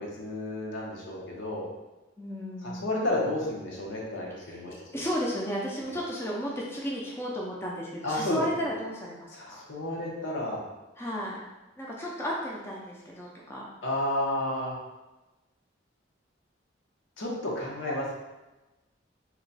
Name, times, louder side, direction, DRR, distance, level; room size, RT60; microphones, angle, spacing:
voice 1, 0.0-1.7 2.6-5.0 5.8-6.0 8.0-8.4 9.3-10.6 13.8-14.8 17.2-18.1, left 1 dB, 80° left, -3 dB, 0.9 m, -32 dB
voice 2, 2.2-2.9 4.7-9.6 11.0-11.4 11.8-13.7, equal, 15° left, -4 dB, 0.4 m, -33 dB
2.9 x 2.2 x 4.0 m, 1.1 s
head